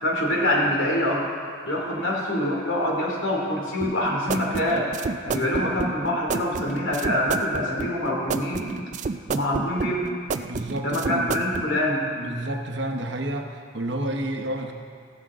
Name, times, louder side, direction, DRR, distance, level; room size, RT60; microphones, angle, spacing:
voice 1, 0.0-1.2 1.6-4.9 5.2-8.7 9.3-10.1 10.8-12.1, left 1 dB, 75° left, -2 dB, 2.7 m, -25 dB
sound 1, 3.8-11.7, right 4 dB, 35° right, 0.3 m, -30 dB
voice 2, 5.3-5.8 10.4-11.5 12.2-14.7, right 1 dB, 60° right, 4 dB, 1.0 m, -30 dB
15.5 x 12.5 x 3.7 m, 2.2 s
head